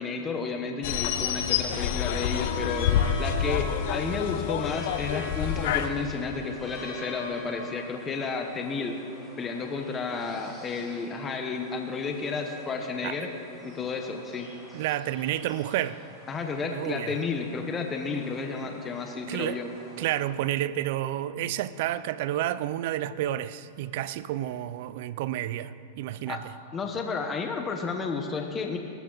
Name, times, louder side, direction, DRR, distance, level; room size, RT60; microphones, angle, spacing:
voice 1, 0.0-9.0 9.4-13.3 13.6-14.5 16.3-19.7 26.3-26.4 26.7-28.8, left 4 dB, 20° left, 1.0 m, -32 dB
sound 1, 0.8-5.9, left 8 dB, 60° left, 0.8 m, -28 dB
sound 2, 2.0-20.2, left 1 dB, ahead, 3.9 m, -45 dB
voice 2, 14.7-16.0 16.7-17.2 19.3-19.6 20.0-26.5, right 13 dB, 55° right, 0.5 m, -30 dB
18.0 x 13.0 x 3.9 m
supercardioid pair, 145°, 0 cm